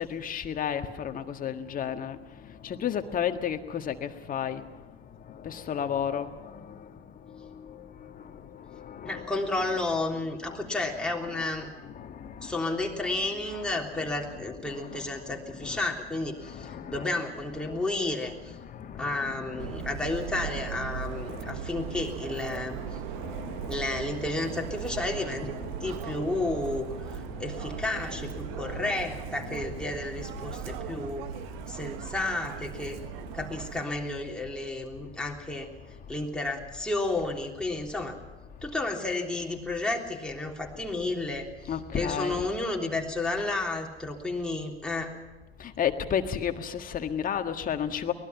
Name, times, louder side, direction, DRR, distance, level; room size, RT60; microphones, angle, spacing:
voice 1, 0.0-9.6 10.2-12.6 13.0-13.1 13.4-17.9 18.2-23.9 24.3-26.4 26.9-28.9 29.2-31.8 32.8-33.5 35.2-35.3 35.8-36.2 38.5-38.6 40.8-40.9 41.6-42.4 45.6-48.1, left 8 dB, 25° left, 7 dB, 1.7 m, -36 dB
voice 2, 9.0-11.7 12.4-18.5 19.0-23.0 23.7-25.5 25.8-31.3 31.7-33.0 33.3-35.7 36.1-38.2 38.6-45.1, left 2 dB, 5° left, 0 dB, 3.4 m, -32 dB
Subway metro underground, 19.6-33.8, right 10 dB, 50° right, 1.2 m, -38 dB
23.5 x 20.0 x 6.0 m, 1.2 s
figure-of-eight pair, 85°, 30 cm